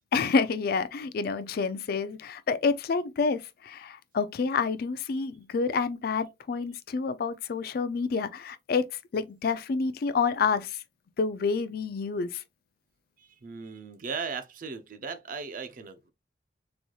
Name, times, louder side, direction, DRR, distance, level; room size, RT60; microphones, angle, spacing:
voice 1, 0.1-8.8 9.1-10.8 11.2-12.4, left 5 dB, 55° left, 0.4 m, -28 dB
voice 2, 13.2-16.1, right 5 dB, 50° right, 0.5 m, -37 dB
4.0 x 3.0 x 2.3 m
head